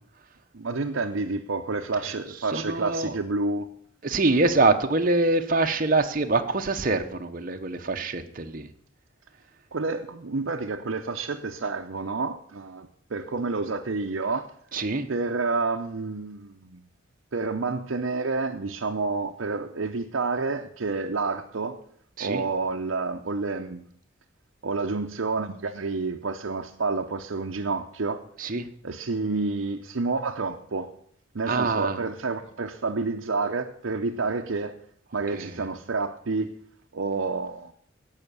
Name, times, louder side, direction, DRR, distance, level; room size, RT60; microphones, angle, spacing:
voice 1, 0.5-3.7 9.7-14.5 15.1-16.8 17.3-21.8 22.2-23.9 24.6-28.2 28.8-30.9 31.3-34.8 35.1-36.5 36.9-37.7, right 3 dB, 75° right, 1 dB, 0.7 m, -29 dB
voice 2, 2.5-3.2 4.0-8.7 14.7-15.1 22.2-22.4 28.4-28.7 31.5-32.0 35.3-35.6, right 3 dB, 45° right, 5 dB, 0.9 m, -24 dB
16.5 x 5.8 x 6.8 m, 0.63 s
head